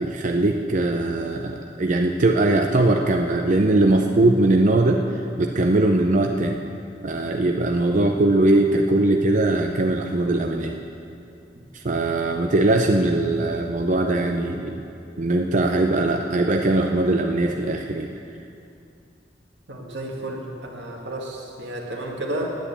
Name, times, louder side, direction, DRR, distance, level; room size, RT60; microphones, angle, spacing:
voice 1, 0.0-5.0 5.4-6.6 7.0-10.8 11.7-14.8 15.2-18.1, right 2 dB, 45° right, 3 dB, 0.6 m, -20 dB
voice 2, 19.7-22.6, right 1 dB, 85° right, 0 dB, 1.9 m, -32 dB
10.0 x 9.3 x 8.4 m, 2.5 s
head